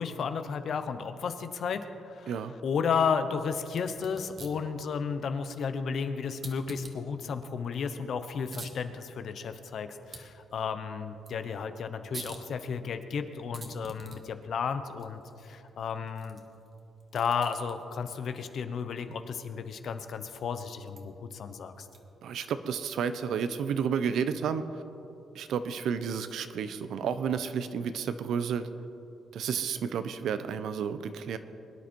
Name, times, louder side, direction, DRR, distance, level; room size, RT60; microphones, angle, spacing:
voice 1, 0.0-2.3 2.6-16.4 17.1-21.9, left 6 dB, 60° left, 10 dB, 0.9 m, -33 dB
sound 1, 3.6-22.3, right 3 dB, 35° right, 1.6 m, -51 dB
voice 2, 22.2-24.6 25.3-28.6 29.3-31.4, right 7 dB, 75° right, 11 dB, 0.8 m, -31 dB
22.5 x 10.0 x 4.6 m, 2.9 s
cardioid pair, 120°, 0 cm